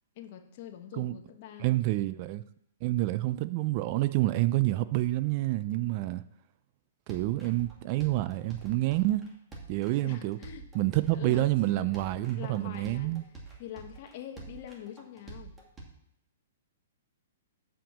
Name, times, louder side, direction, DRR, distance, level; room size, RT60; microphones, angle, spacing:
voice 1, 0.1-1.8 10.0-10.7 11.1-13.3 13.6-15.5, left 10 dB, 50° left, 1.4 m, -44 dB
voice 2, 1.6-2.4 2.8-6.2 7.1-9.2 9.7-10.4 10.7-13.2, right 17 dB, 40° right, 0.4 m, -28 dB
sound 1, 7.1-15.8, right 3 dB, 15° right, 2.2 m, -47 dB
7.3 x 5.9 x 7.2 m
hypercardioid pair, 145°, 0 cm